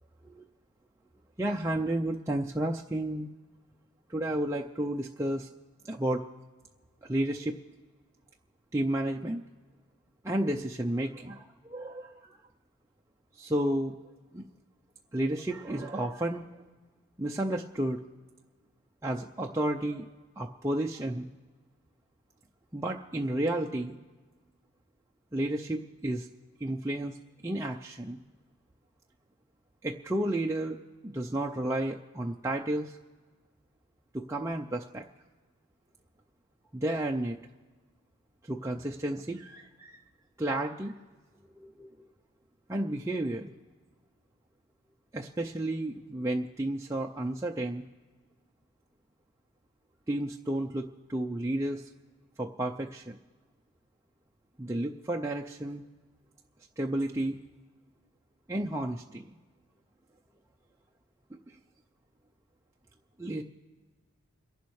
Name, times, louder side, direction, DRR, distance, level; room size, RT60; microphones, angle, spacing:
voice 1, 1.4-3.3 4.1-5.5 5.9-6.2 7.0-7.6 8.7-9.4 10.2-12.4 13.4-13.9 14.3-14.4 15.1-16.5 17.2-18.0 19.0-20.1 20.4-21.3 22.7-24.0 25.3-26.3 26.6-27.2 27.4-28.2 29.8-33.0 34.1-35.0 36.7-37.4 38.4-40.0 40.4-40.9 41.6-41.9 42.7-43.5 45.1-47.8 50.1-51.9 52.4-53.2 54.6-55.8 56.8-57.4 58.5-59.2 61.5-61.6 63.2-63.4, right 1 dB, 15° right, 0 dB, 0.5 m, -32 dB
30.0 x 11.5 x 3.2 m, 1.4 s
head